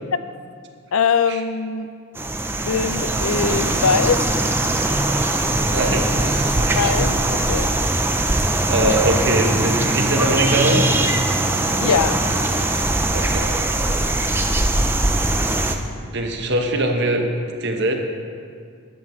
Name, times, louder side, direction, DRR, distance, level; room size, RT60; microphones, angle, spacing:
voice 1, 0.9-1.9 2.7-4.3 6.7-7.7 11.8-12.2, left 6 dB, 70° left, 12 dB, 0.5 m, -21 dB
sound 1, 2.2-15.8, right 2 dB, 10° right, 0.4 m, -21 dB
voice 2, 5.6-6.9 8.7-10.8 13.1-13.6 16.0-17.3 17.6-18.0, right 1 dB, 50° right, 3 dB, 1.0 m, -22 dB
13.5 x 11.0 x 3.1 m, 2.2 s
head